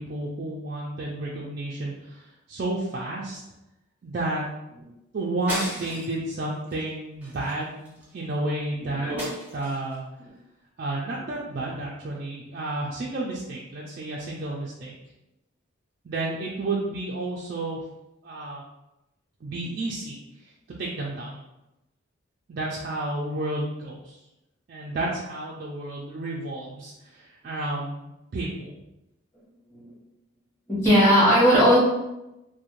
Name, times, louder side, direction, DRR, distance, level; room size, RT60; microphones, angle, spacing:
voice 1, 0.0-3.4 4.0-4.5 5.1-9.1 9.5-10.0 10.8-14.9 16.0-17.8 18.2-18.6 19.4-20.1 20.4-20.5 20.8-21.4 22.5-24.2 24.7-28.7, right 2 dB, 45° right, -4 dB, 0.3 m, -31 dB
sound 1, 5.5-6.2 6.7-6.9 7.2-8.2 9.2-9.9, equal, 10° right, 0.6 m, -35 dB
voice 2, 8.8-9.2 29.7-29.8 30.7-31.8, equal, 15° left, -9 dB, 1.1 m, -18 dB
2.4 x 2.1 x 3.0 m, 0.93 s
head